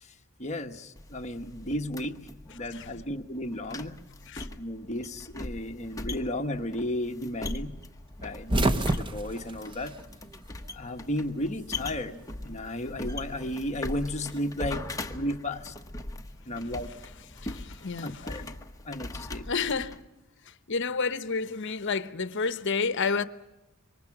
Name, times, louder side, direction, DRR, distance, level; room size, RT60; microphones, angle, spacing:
voice 1, 0.4-2.2 2.5-4.0 4.6-7.8 8.2-9.9 10.7-15.7 16.4-16.9 18.0-18.5 18.9-19.5, left 1 dB, 35° left, 1.3 m, -34 dB
sound 1, 1.0-20.0, left 2 dB, 15° left, 1.1 m, -40 dB
sound 2, 8.2-10.7 11.0-12.1 13.3-14.7, right 1 dB, 25° right, 0.9 m, -30 dB
voice 2, 17.3-18.2 19.5-20.0 20.5-23.2, left 5 dB, 60° left, 0.9 m, -30 dB
26.5 x 24.0 x 6.0 m
head